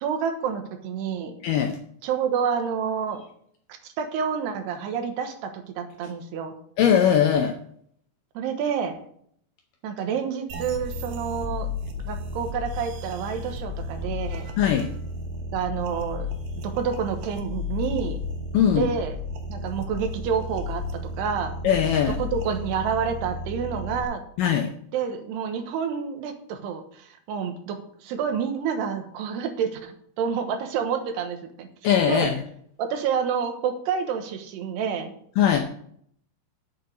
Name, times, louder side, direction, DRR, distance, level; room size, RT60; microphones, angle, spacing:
voice 1, 0.0-1.4 2.0-3.2 3.7-6.5 8.3-9.0 9.8-11.7 12.1-14.5 15.5-16.3 16.6-18.2 18.8-19.2 19.5-20.8 21.2-21.5 22.2-24.2 24.9-31.7 32.1-32.3 32.8-35.1, right 7 dB, 90° right, 6 dB, 3.3 m, -28 dB
voice 2, 1.4-1.8 6.8-7.6 14.6-14.9 18.5-18.9 21.6-22.2 24.4-24.7 31.8-32.3 35.4-35.6, left 9 dB, 75° left, 4 dB, 2.0 m, -20 dB
sound 1, 10.5-24.0, left 2 dB, 70° right, 3.0 m, -33 dB
8.0 x 7.0 x 6.5 m, 0.64 s
omnidirectional pair, 4.7 m